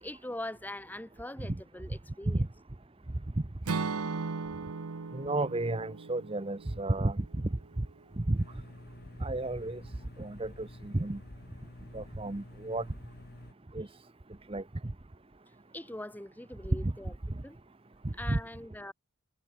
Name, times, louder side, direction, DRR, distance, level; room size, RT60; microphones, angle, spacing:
voice 1, 0.0-2.5 15.7-17.2 17.4-17.6 18.1-18.9, left 1 dB, 10° left, 0.7 m, -42 dB
Acoustic guitar / Strum, 3.6-7.8, right 4 dB, 90° right, 0.8 m, -37 dB
voice 2, 5.1-7.2 8.2-8.4 9.2-9.8 10.2-11.2 11.9-12.8 13.7-13.9 14.5-14.6 16.8-16.9 18.3-18.4, right 2 dB, 25° right, 0.7 m, -32 dB
sound 1, 8.4-13.5, left 1 dB, 45° left, 1.7 m, -49 dB
head